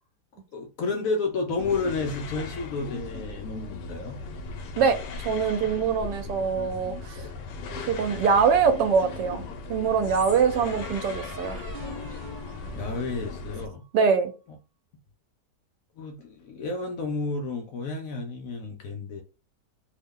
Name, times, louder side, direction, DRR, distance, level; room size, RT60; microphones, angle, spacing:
voice 1, 0.5-4.2 12.7-13.8 16.0-19.2, left 3 dB, 70° left, 0.8 m, -31 dB
sound 1, 1.6-13.7, left 4 dB, 85° left, 1.2 m, -38 dB
voice 2, 4.8-7.2 7.9-9.4 9.7-11.6 13.9-14.3, right 6 dB, 85° right, 1.2 m, -23 dB
sound 2, 8.7-9.6 10.5-13.9, right 2 dB, 55° right, 0.6 m, -43 dB
3.0 x 2.1 x 3.5 m
omnidirectional pair, 1.8 m